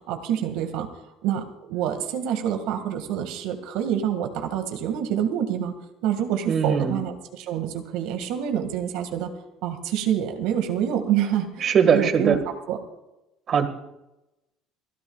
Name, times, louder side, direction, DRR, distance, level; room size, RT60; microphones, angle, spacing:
voice 1, 0.1-0.9 1.2-5.7 6.0-9.3 9.6-12.8, right 9 dB, 80° right, 5 dB, 1.9 m, -27 dB
voice 2, 6.5-7.0 11.6-12.4 13.5-13.7, right 7 dB, 35° right, 8 dB, 1.7 m, -20 dB
29.0 x 12.0 x 2.4 m, 0.93 s
cardioid pair, 145°, 0 cm